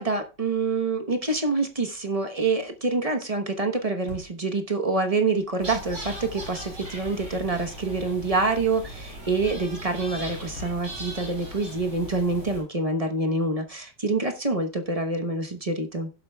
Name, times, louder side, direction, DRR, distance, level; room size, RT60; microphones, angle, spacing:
voice 1, 0.0-16.1, right 3 dB, 25° right, 5 dB, 0.8 m, -26 dB
sound 1, 4.1-4.5 5.4-6.4 10.6-10.9 11.5-12.3, left 1 dB, 55° left, 3.3 m, -45 dB
sound 2, 5.6-12.6, equal, 45° right, 6.1 m, -39 dB
16.5 x 7.7 x 2.3 m, 0.33 s
omnidirectional pair, 1.9 m